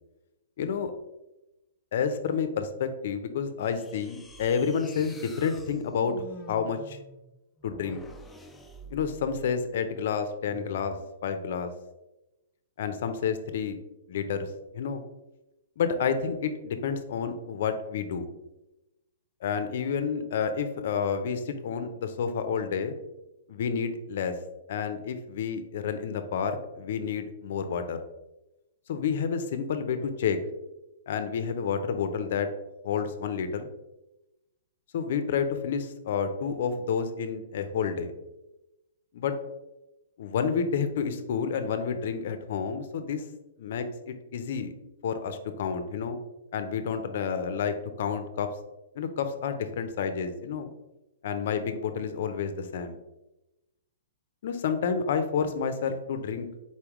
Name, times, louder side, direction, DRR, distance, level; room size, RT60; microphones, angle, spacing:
voice 1, 0.6-0.9 1.9-6.1 6.5-7.0 7.6-8.0 8.9-10.9 11.2-11.7 12.8-13.8 14.1-14.5 14.7-15.0 15.8-18.3 19.4-23.0 23.5-24.3 24.7-28.0 28.9-30.4 31.1-32.5 32.8-33.7 34.9-38.1 39.1-39.3 40.2-43.2 43.6-44.7 45.0-46.2 46.5-48.5 48.9-50.7 51.2-53.0 54.4-56.5, left 6 dB, 60° left, 9 dB, 0.5 m, -29 dB
sound 1, 3.6-9.6 10.4-11.1, right 1 dB, 5° left, 0.3 m, -48 dB
4.2 x 3.5 x 3.0 m, 0.97 s
hypercardioid pair, 155°, 0 cm